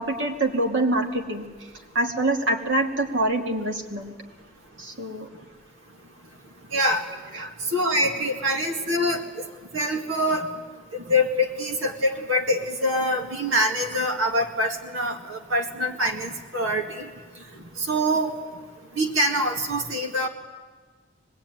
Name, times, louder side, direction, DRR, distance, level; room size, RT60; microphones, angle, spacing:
voice 1, 0.0-1.4 1.9-4.1 4.8-5.3 7.3-7.5, right 2 dB, 70° right, 3 dB, 2.5 m, -25 dB
voice 2, 6.7-7.0 7.7-9.2 9.7-10.5 11.1-17.0 17.9-18.3 19.0-20.3, equal, 85° right, 3 dB, 2.0 m, -24 dB
24.0 x 20.5 x 9.4 m, 1.4 s
head